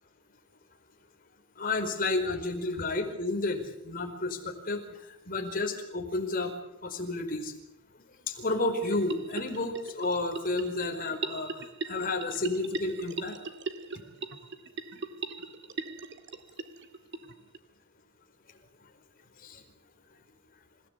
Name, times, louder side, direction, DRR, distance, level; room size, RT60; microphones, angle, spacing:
voice 1, 1.6-6.5 6.8-7.5 8.3-13.5 13.9-14.1 19.4-19.6, left 2 dB, 40° left, 3 dB, 4.7 m, -31 dB
sound 1, 8.8-17.6, right 3 dB, 55° right, 1.9 m, -40 dB
27.5 x 17.5 x 8.3 m, 0.87 s
head